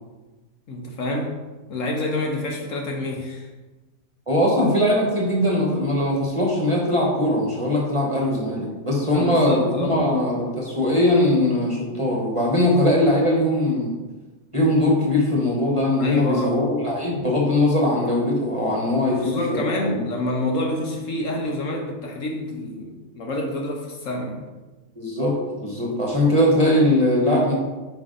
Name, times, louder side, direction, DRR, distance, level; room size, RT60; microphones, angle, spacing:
voice 1, 0.7-1.4 1.7-3.5 9.1-10.3 16.0-16.6 19.1-24.5, left 1 dB, 60° left, 1 dB, 1.0 m, -27 dB
voice 2, 4.3-13.9 14.5-20.0 25.0-27.5, left 1 dB, 25° right, -3 dB, 1.0 m, -21 dB
5.3 x 5.2 x 3.8 m, 1.2 s
omnidirectional pair, 1.6 m